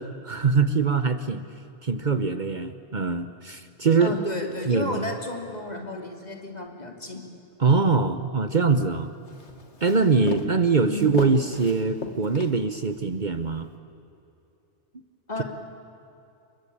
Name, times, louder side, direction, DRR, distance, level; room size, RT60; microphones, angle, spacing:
voice 1, 0.0-1.4 1.8-4.1 4.7-5.0 7.6-9.1 9.8-13.7, right 4 dB, 45° right, 10 dB, 1.1 m, -23 dB
voice 2, 4.0-7.2 10.9-11.1 15.3-15.4, left 2 dB, 35° left, 3 dB, 3.3 m, -32 dB
Walk footsteps, 8.7-13.0, left 3 dB, 75° left, 2.3 m, -36 dB
28.5 x 23.5 x 8.7 m, 2.8 s
omnidirectional pair, 1.2 m